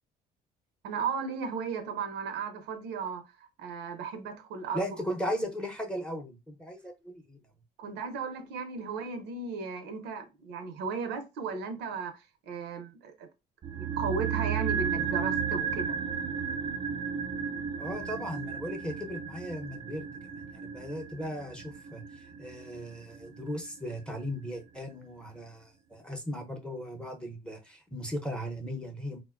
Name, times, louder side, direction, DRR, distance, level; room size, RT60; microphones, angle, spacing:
voice 1, 0.8-3.2 3.6-5.0 7.8-12.1 12.5-13.3 13.7-16.0, right 5 dB, 85° right, 0.7 m, -35 dB
voice 2, 4.7-7.4 17.8-29.2, equal, 5° left, 0.7 m, -37 dB
sound 1, 13.6-23.9 24.1-24.2, right 7 dB, 30° right, 0.4 m, -34 dB
3.8 x 2.1 x 2.4 m
cardioid pair, 110°, 17 cm